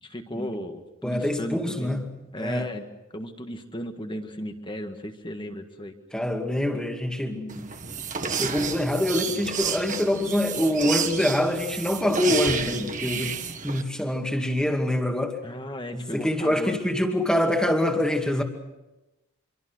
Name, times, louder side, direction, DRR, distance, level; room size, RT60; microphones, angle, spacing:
voice 1, 0.0-1.9 2.3-2.8 3.1-5.9 15.4-16.8, equal, 20° left, 6 dB, 1.8 m, -35 dB
voice 2, 1.0-2.7 6.1-7.7 8.4-13.4 13.6-15.4 15.9-18.4, left 1 dB, 5° left, 3 dB, 2.3 m, -25 dB
sound 1, 7.5-13.8, right 6 dB, 35° right, 1.6 m, -31 dB
27.0 x 24.0 x 6.4 m, 1.0 s
head